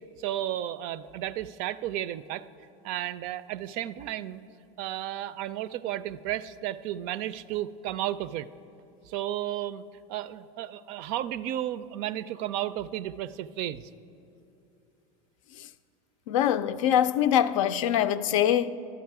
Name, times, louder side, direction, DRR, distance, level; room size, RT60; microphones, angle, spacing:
voice 1, 0.2-2.4 2.8-4.4 4.8-8.5 9.1-9.8 10.1-13.9, right 12 dB, 60° right, 0.4 m, -33 dB
voice 2, 16.3-18.7, left 10 dB, 85° left, 0.4 m, -23 dB
12.0 x 8.2 x 4.7 m
supercardioid pair, 100°, 16 cm